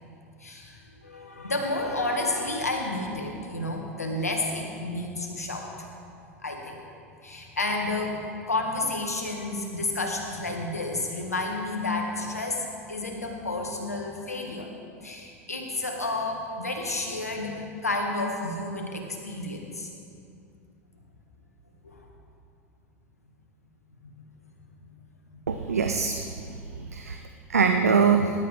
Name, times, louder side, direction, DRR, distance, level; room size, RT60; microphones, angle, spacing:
voice 1, 0.4-5.7 6.4-6.8 7.2-14.7 15.0-19.9 21.8-22.0, left 2 dB, 85° left, 1 dB, 1.9 m, -31 dB
voice 2, 25.5-26.6 26.9-27.2 27.5-28.3, right 6 dB, 80° right, 6 dB, 0.7 m, -23 dB
19.5 x 11.5 x 3.7 m, 2.6 s
figure-of-eight pair, 80°, 8 cm